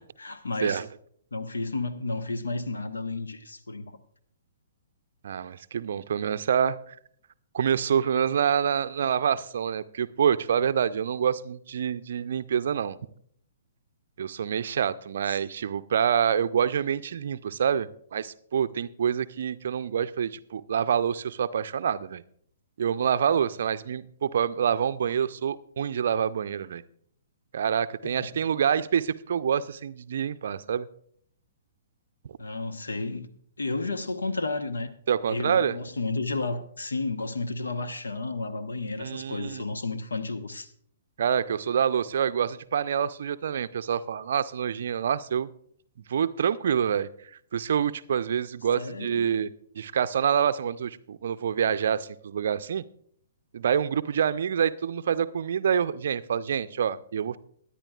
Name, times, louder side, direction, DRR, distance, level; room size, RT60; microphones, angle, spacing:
voice 1, 0.2-0.8 1.3-3.9 15.3-15.4 28.0-28.3 32.4-33.3 33.6-34.9 35.3-40.7 48.8-49.3, left 3 dB, 75° left, 1.0 m, -32 dB
voice 2, 5.2-7.0 7.5-13.0 14.2-22.2 22.8-26.8 27.5-30.9 35.1-35.8 39.0-39.6 41.2-45.5 46.1-47.1 47.5-49.5 49.8-52.8 53.5-57.4, right 8 dB, 55° right, 0.5 m, -26 dB
22.0 x 10.0 x 2.4 m
figure-of-eight pair, 120°, 0 cm